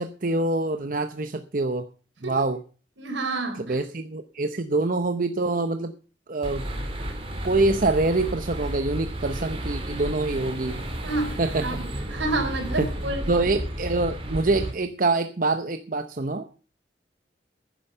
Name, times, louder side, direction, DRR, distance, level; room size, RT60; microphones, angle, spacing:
voice 1, 0.0-1.9 2.2-2.6 3.6-5.9 6.3-6.6 7.4-10.8 11.4-11.8 12.8-12.9 13.3-16.5, right 2 dB, 45° right, 8 dB, 0.8 m, -25 dB
voice 2, 3.0-3.8 11.0-11.8 12.1-13.2, right 2 dB, 85° right, 5 dB, 3.9 m, -29 dB
sound 1, 6.4-14.7, right 1 dB, 30° right, 2.7 m, -32 dB
11.5 x 10.0 x 6.8 m, 0.38 s
head